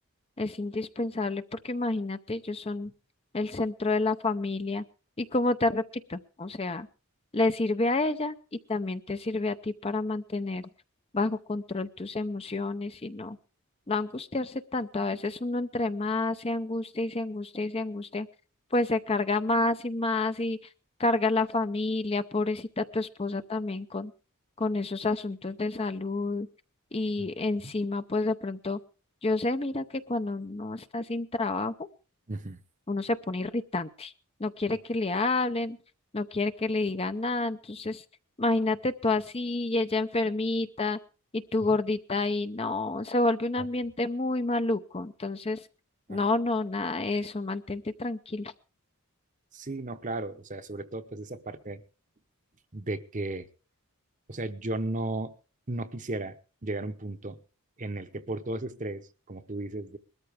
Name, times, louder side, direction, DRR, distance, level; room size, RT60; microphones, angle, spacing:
voice 1, 0.4-2.9 3.3-4.8 5.2-5.8 6.1-6.9 7.3-8.4 8.7-10.7 11.1-13.4 13.9-18.3 18.7-20.6 21.0-24.1 24.6-26.5 26.9-28.8 29.2-31.7 32.9-34.1 34.4-35.8 36.1-38.0 38.4-41.0 41.3-45.6 46.1-48.5, left 2 dB, 25° left, 0.6 m, -29 dB
voice 2, 32.3-32.6 46.1-46.2 49.5-51.8 52.7-53.5 54.3-55.3 55.7-56.4 56.6-57.4 57.8-60.0, right 2 dB, 35° right, 0.9 m, -35 dB
21.0 x 13.5 x 3.5 m
head